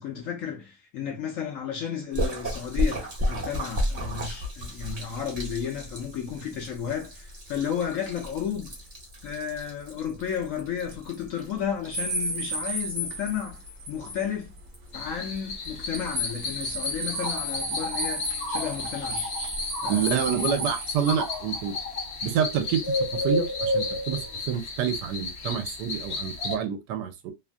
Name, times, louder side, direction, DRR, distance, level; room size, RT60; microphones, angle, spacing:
voice 1, 0.0-8.7 9.2-14.5 14.9-19.2 19.8-20.4, left 8 dB, 65° left, 0.8 m, -33 dB
Splash splatter, 2.1-17.1, equal, 30° right, 0.9 m, -35 dB
sound 1, 11.9-14.3 14.6-14.7 15.6-21.3, equal, 55° right, 0.9 m, -33 dB
sound 2, 14.9-26.6, left 2 dB, 90° left, 0.5 m, -32 dB
voice 2, 19.9-21.8 22.2-27.3, right 8 dB, 80° right, 1.2 m, -28 dB
3.0 x 2.3 x 2.4 m
omnidirectional pair, 1.8 m